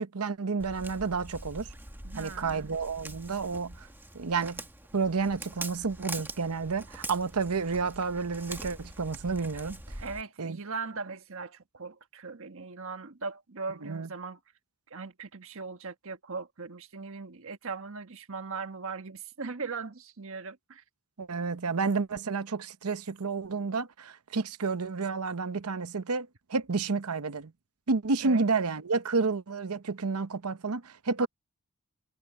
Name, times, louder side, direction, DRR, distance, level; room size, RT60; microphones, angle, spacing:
voice 1, 0.0-1.7 2.2-3.9 4.1-4.6 4.9-9.8 10.4-10.6 13.8-14.1 21.2-27.5 27.9-31.3, right 4 dB, 85° right, 0.9 m, -30 dB
Walk footsteps, 0.6-10.2, right 2 dB, 10° right, 1.8 m, -43 dB
voice 2, 2.0-2.7 10.0-14.4 14.9-20.8 28.2-28.5 31.2-31.3, right 4 dB, 65° right, 1.4 m, -39 dB
head